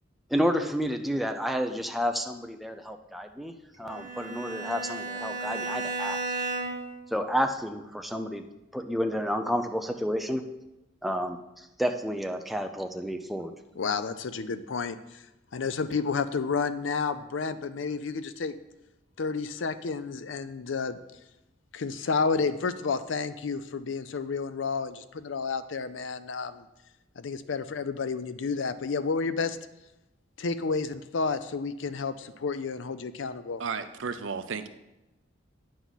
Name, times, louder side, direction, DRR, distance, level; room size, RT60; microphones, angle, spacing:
voice 1, 0.3-3.5 3.8-6.2 7.1-8.4 8.7-10.4 11.0-13.5, equal, ahead, 5 dB, 0.5 m, -30 dB
Bowed string instrument, 3.9-7.0, right 3 dB, 40° right, 1.5 m, -34 dB
voice 2, 13.8-15.3 15.5-18.5 19.2-21.0 21.7-26.6 27.2-29.6 30.4-33.6, left 4 dB, 75° left, 13 dB, 0.5 m, -31 dB
voice 3, 33.6-34.7, right 5 dB, 80° right, 11 dB, 0.6 m, -33 dB
9.4 x 6.3 x 4.1 m, 0.96 s
head